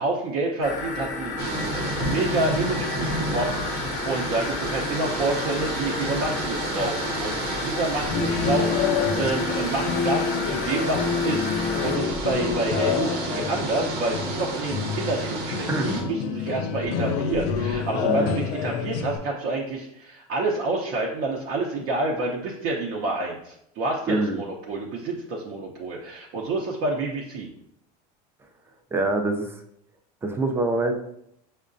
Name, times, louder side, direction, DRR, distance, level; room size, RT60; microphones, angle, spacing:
voice 1, 0.0-27.5, right 2 dB, 55° right, -1 dB, 0.6 m, -28 dB
sound 1, 0.6-12.0, left 4 dB, 40° left, 0.6 m, -33 dB
sound 2, 1.4-16.0, right 2 dB, 80° right, 0.9 m, -31 dB
sound 3, 8.1-19.2, left 6 dB, 85° left, 0.4 m, -28 dB
voice 2, 15.7-16.0 18.0-18.4 24.1-24.4 28.9-29.6 30.2-30.9, right 2 dB, 10° right, 4 dB, 0.4 m, -25 dB
5.4 x 2.1 x 2.5 m, 0.74 s
supercardioid pair, 135°, 20 cm